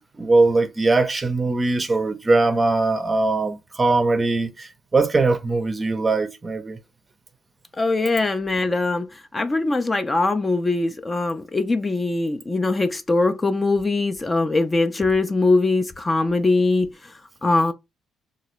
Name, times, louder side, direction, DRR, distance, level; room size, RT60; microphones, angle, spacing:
voice 1, 0.2-6.8, right 3 dB, 25° right, 0.6 m, -21 dB
voice 2, 7.8-17.1 17.4-17.7, left 3 dB, 25° left, 0.4 m, -22 dB
2.9 x 2.4 x 3.0 m
cardioid pair, 85°, 0 cm